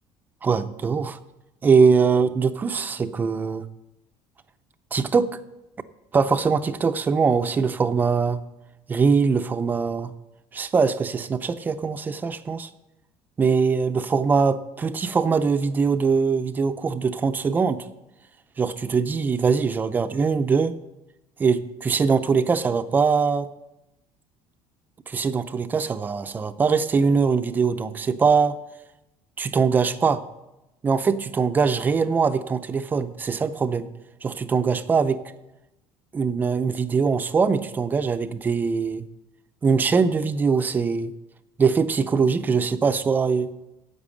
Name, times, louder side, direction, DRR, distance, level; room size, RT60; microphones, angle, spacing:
voice 1, 0.4-1.2 1.6-3.7 4.9-5.3 6.1-8.4 8.9-10.1 10.5-12.7 13.4-17.8 18.6-20.8 21.4-23.5 25.1-28.6 29.4-30.2 30.8-33.9 34.2-35.2 36.1-39.0 39.6-41.1 41.6-43.5, right 5 dB, 20° right, 11 dB, 0.5 m, -22 dB
10.5 x 8.0 x 8.4 m, 0.96 s
cardioid pair, 170°, 10 cm